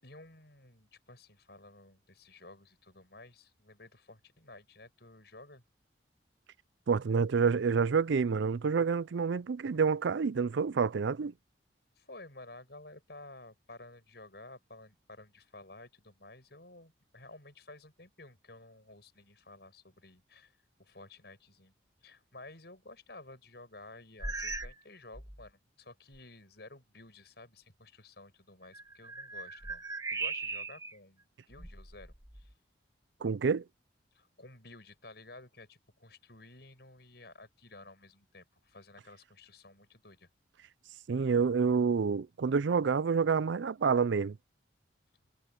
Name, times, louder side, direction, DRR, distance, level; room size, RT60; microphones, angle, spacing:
voice 1, 0.0-5.6 12.0-21.7 22.0-29.8 30.1-32.5 34.1-40.3, left 2 dB, 60° left, 6.8 m, -53 dB
voice 2, 6.9-11.3 33.2-33.6 41.1-44.4, right 5 dB, 75° right, 0.4 m, -28 dB
sound 1, 24.2-24.8 25.1-25.5 26.1-26.2 28.6-31.0 31.5-32.5, right 3 dB, 20° right, 2.0 m, -39 dB
head